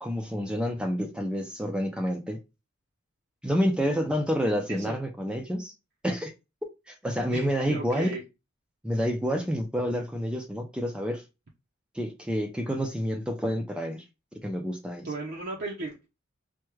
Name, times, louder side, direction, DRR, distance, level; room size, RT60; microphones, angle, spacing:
voice 1, 0.0-2.4 3.4-5.7 6.0-6.3 6.9-8.1 8.8-11.2 11.9-14.0 14.4-15.1, equal, 5° right, 0.4 m, -28 dB
voice 2, 7.3-8.2 15.0-16.1, right 2 dB, 50° right, 0.6 m, -35 dB
3.4 x 2.2 x 3.1 m
head